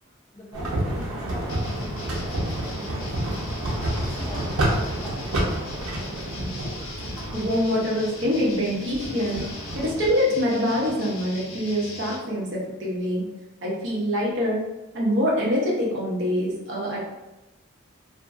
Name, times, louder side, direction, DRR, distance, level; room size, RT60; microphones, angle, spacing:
voice 1, 0.3-3.4 3.9-5.8, equal, 15° left, -4 dB, 0.3 m, -43 dB
sound 1, 0.5-10.1, right 1 dB, 90° right, 0.7 m, -29 dB
sound 2, 1.5-12.2, left 2 dB, 80° left, 0.6 m, -40 dB
voice 2, 7.3-9.5 9.7-13.3 13.6-14.6 14.9-17.0, equal, 60° right, -4 dB, 0.8 m, -25 dB
2.6 x 2.5 x 2.3 m, 0.99 s
head